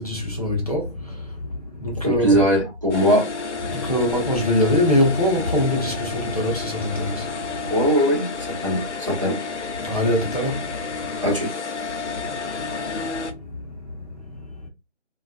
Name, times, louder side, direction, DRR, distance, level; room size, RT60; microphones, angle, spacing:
voice 1, 0.0-2.4 3.6-7.8 9.8-11.4 12.0-14.7, left 1 dB, 30° left, 0.7 m, -25 dB
voice 2, 2.0-3.3 7.6-9.4 11.2-11.5, equal, 25° right, 0.8 m, -20 dB
sound 1, 2.9-13.3, left 4 dB, 75° left, 0.5 m, -31 dB
2.3 x 2.3 x 2.3 m
figure-of-eight pair, 160°, 35 cm